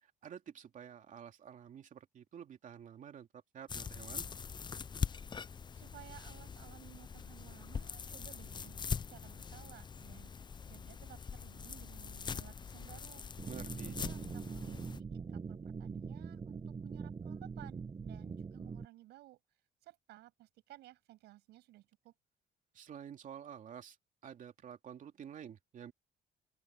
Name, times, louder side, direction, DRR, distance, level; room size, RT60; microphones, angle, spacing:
voice 1, 0.0-4.2 13.5-14.0 22.7-24.0 24.2-25.9, right 8 dB, 50° right, 2.8 m, -50 dB
sound 1, 3.7-15.0, left 6 dB, 25° left, 0.7 m, -43 dB
voice 2, 5.7-10.3 10.6-13.2 13.8-19.4 19.8-22.1, right 16 dB, 80° right, 8.0 m, -57 dB
sound 2, 13.4-18.9, right 5 dB, 30° right, 1.2 m, -43 dB
open air
cardioid pair, 110°, 17 cm